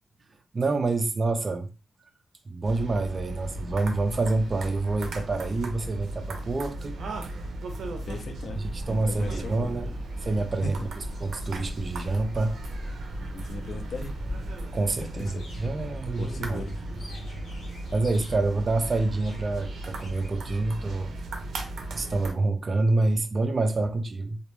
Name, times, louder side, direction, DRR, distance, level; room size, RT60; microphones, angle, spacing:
voice 1, 0.5-1.7 2.5-7.0 8.6-9.9 10.2-12.6 14.7-16.6 17.9-21.1 21.9-24.4, right 2 dB, 30° right, 0.3 m, -27 dB
sound 1, 2.6-22.3, right 1 dB, 85° right, 0.5 m, -36 dB
voice 2, 8.1-8.6 8.9-9.8 10.6-10.8 13.3-14.2 15.0-15.5 16.2-16.7, left 2 dB, 50° left, 0.5 m, -37 dB
sound 2, 8.5-14.7, equal, 25° left, 0.8 m, -40 dB
sound 3, 15.1-20.4, left 1 dB, 70° left, 1.0 m, -46 dB
2.2 x 2.1 x 3.0 m
wide cardioid pair, 175°, 0 cm